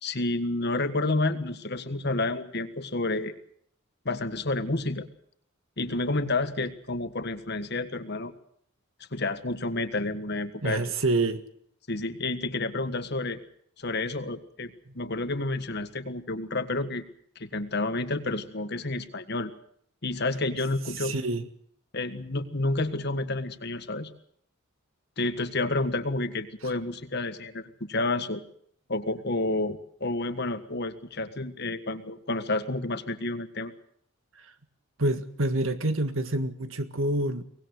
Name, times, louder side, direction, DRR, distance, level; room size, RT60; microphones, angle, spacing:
voice 1, 0.0-3.3 4.0-5.1 5.8-8.3 9.1-10.8 11.9-13.4 13.8-17.0 17.3-19.5 20.0-21.2 21.9-24.1 25.2-28.4 28.9-33.7, left 2 dB, 50° left, 10 dB, 1.6 m, -30 dB
voice 2, 10.6-11.4 14.9-15.0 21.0-21.5 34.4-34.5 35.0-37.4, right 2 dB, 70° right, 10 dB, 1.9 m, -27 dB
23.5 x 19.5 x 6.6 m, 0.63 s
head